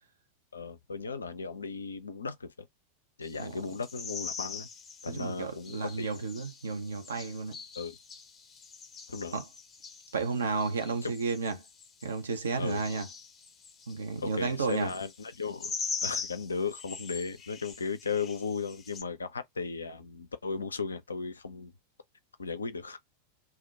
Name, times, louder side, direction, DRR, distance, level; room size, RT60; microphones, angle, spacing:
voice 1, 0.5-2.7 3.2-4.7 5.0-6.1 7.8-8.0 9.1-9.4 11.0-11.1 12.6-12.8 14.2-15.7 16.0-21.7 22.4-23.0, left 4 dB, 75° left, 0.4 m, -36 dB
sound 1, 3.2-19.0, left 5 dB, 25° left, 0.6 m, -43 dB
voice 2, 5.1-7.6 9.3-9.4 10.1-11.6 12.0-13.1 13.9-14.9, right 4 dB, 70° right, 0.6 m, -32 dB
2.3 x 2.1 x 2.6 m
figure-of-eight pair, 90°, 0 cm